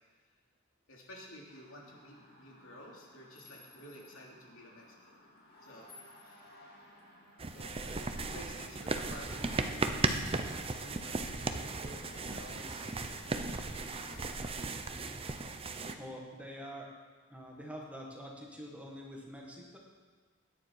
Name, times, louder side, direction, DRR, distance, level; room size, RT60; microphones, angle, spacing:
voice 1, 0.9-5.1 5.6-5.9 6.2-6.5 7.5-10.1 10.8-14.5, left 1 dB, 65° left, -2 dB, 3.1 m, -52 dB
sound 1, 1.5-14.3, left 1 dB, 45° left, 2.6 m, -58 dB
sound 2, 7.4-16.0, right 3 dB, 25° right, 0.7 m, -36 dB
voice 2, 16.0-16.9 17.3-19.8, equal, 5° right, -2 dB, 1.8 m, -46 dB
21.0 x 9.7 x 4.8 m, 1.5 s
head